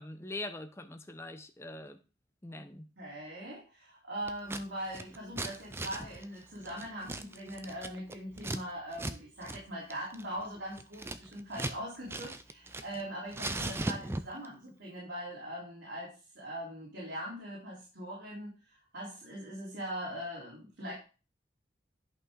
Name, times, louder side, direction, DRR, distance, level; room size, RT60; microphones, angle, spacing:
voice 1, 0.0-2.0 2.4-2.9, left 2 dB, 15° left, 8 dB, 0.7 m, -43 dB
voice 2, 3.0-20.9, equal, 85° right, -6 dB, 3.7 m, -41 dB
Scissors, 4.3-4.6 4.9-8.6 8.9-9.2 9.4-9.6 9.9-11.8 12.1-13.0 13.3-14.5, right 2 dB, 15° right, 0.4 m, -38 dB
11.0 x 5.5 x 3.8 m, 0.33 s
head